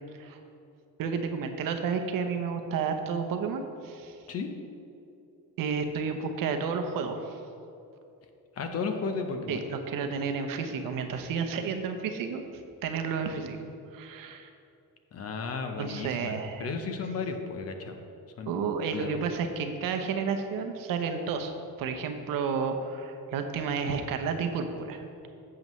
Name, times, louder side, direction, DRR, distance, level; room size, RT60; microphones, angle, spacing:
voice 1, 1.0-4.2 5.6-7.4 9.5-12.4 12.8-13.6 13.9-14.5 15.8-16.7 18.5-21.5 21.8-25.0, right 5 dB, 60° right, 6 dB, 0.8 m, -31 dB
voice 2, 8.6-9.7 15.1-18.0 18.4-19.1, left 4 dB, 40° left, 6 dB, 0.8 m, -34 dB
11.0 x 7.5 x 3.1 m, 2.7 s
cardioid pair, 150°, 37 cm